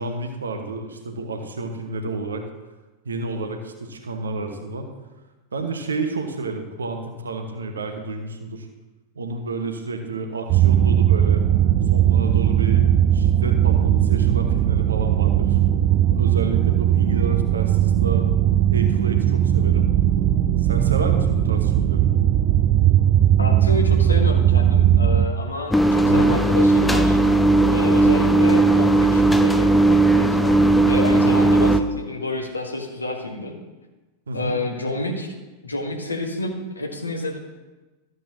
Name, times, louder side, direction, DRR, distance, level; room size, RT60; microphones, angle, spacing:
voice 1, 0.0-2.5 3.0-4.9 5.5-8.7 9.1-11.5 11.9-12.9 13.1-15.6 16.1-18.3 18.7-19.9 20.6-22.1 26.0-26.3 31.3-31.4 34.3-34.6, right 3 dB, 70° right, 5 dB, 1.1 m, -30 dB
sound 1, 10.5-25.3, right 11 dB, 40° right, 0.5 m, -18 dB
voice 2, 23.4-27.2 27.7-33.6 34.3-35.4 35.6-37.4, left 2 dB, 80° left, 2 dB, 1.6 m, -29 dB
sound 2, 25.7-31.8, right 2 dB, 5° left, 0.6 m, -17 dB
13.5 x 7.8 x 3.0 m, 1.2 s
figure-of-eight pair, 90°, 0 cm